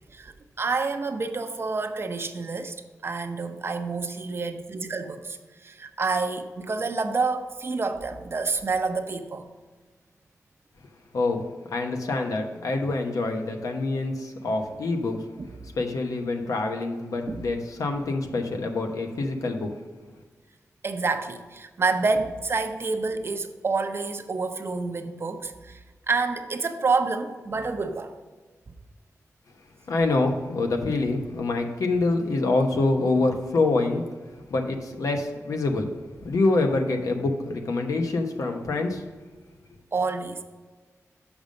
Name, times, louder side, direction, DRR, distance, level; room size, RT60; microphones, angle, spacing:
voice 1, 0.1-2.8 3.0-9.5 17.3-17.4 20.8-28.1 39.9-40.4, right 4 dB, 45° right, 7 dB, 0.7 m, -28 dB
voice 2, 11.7-15.2 15.8-19.7 29.9-34.0 34.5-35.9 36.2-39.0, left 3 dB, 80° left, 4 dB, 1.0 m, -26 dB
7.1 x 5.3 x 5.2 m, 1.4 s
wide cardioid pair, 100°, 6 cm